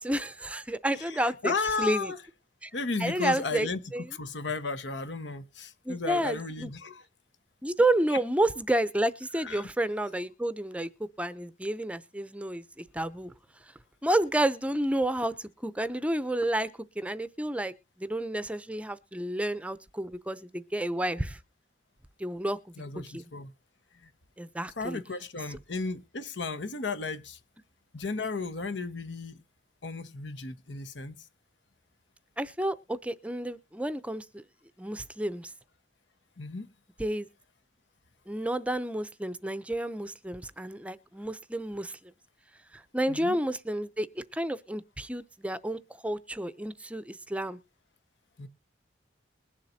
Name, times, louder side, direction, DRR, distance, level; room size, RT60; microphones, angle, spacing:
voice 1, 0.0-2.1 2.6-2.7 3.0-4.1 5.9-6.7 7.6-10.9 11.2-12.6 12.9-13.3 14.0-16.7 17.0-17.7 18.0-21.4 22.2-22.6 23.1-23.2 24.4-25.0 32.4-34.4 34.8-35.5 37.0-37.3 38.3-41.9 42.7-47.6, right 1 dB, 5° right, 0.6 m, -30 dB
voice 2, 1.0-2.2 2.7-3.8 4.1-7.0 8.1-8.2 9.4-9.7 22.8-23.5 24.0-24.1 24.8-27.4 27.9-29.4 29.8-31.2 36.4-36.7 43.1-43.4 48.4-48.5, left 4 dB, 80° left, 1.2 m, -34 dB
21.5 x 7.4 x 2.7 m
head